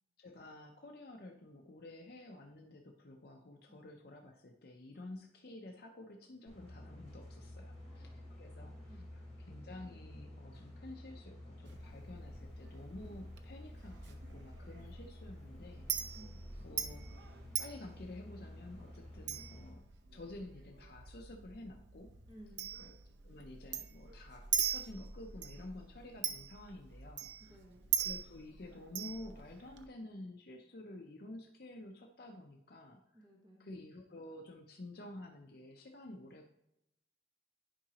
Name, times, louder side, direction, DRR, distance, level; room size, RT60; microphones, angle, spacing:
voice 1, 0.2-15.9 16.6-17.0 17.6-19.8 20.1-22.1 22.8-22.9 23.2-27.6 28.0-33.3 33.6-36.5, left 1 dB, 55° left, 2 dB, 0.6 m, -51 dB
sound 1, 6.5-19.7, left 1 dB, 5° left, 2.7 m, -51 dB
voice 2, 7.8-8.3 8.9-9.1 16.1-16.4 22.3-22.8 27.4-27.9 33.1-33.7, right 1 dB, 20° right, -1 dB, 1.1 m, -58 dB
Chink clink, 11.6-29.9, right 8 dB, 75° right, 0.6 m, -42 dB
10.0 x 4.8 x 2.9 m, 0.84 s
head